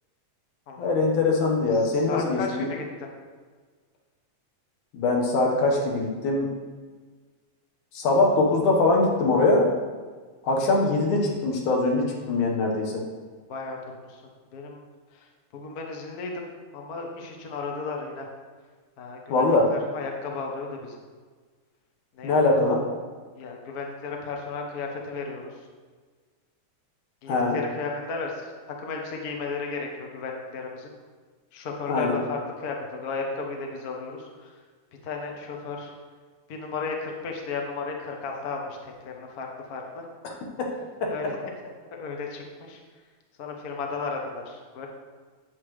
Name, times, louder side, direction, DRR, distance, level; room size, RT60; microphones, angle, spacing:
voice 1, 0.8-2.7 4.9-6.5 7.9-9.7 10.4-13.0 19.3-19.7 22.2-22.8 27.3-27.6 31.9-32.2, left 2 dB, 90° left, 0 dB, 2.9 m, -22 dB
voice 2, 1.7-3.1 13.5-14.2 14.5-14.8 15.1-16.5 16.7-18.3 19.0-21.0 22.1-22.8 23.3-25.7 27.2-28.5 28.8-30.9 31.5-34.5 35.0-35.9 36.5-40.1 41.0-41.4 42.0-42.8 43.4-44.9, left 4 dB, 65° left, 1 dB, 0.9 m, -34 dB
9.5 x 8.1 x 3.2 m, 1.5 s
omnidirectional pair, 3.4 m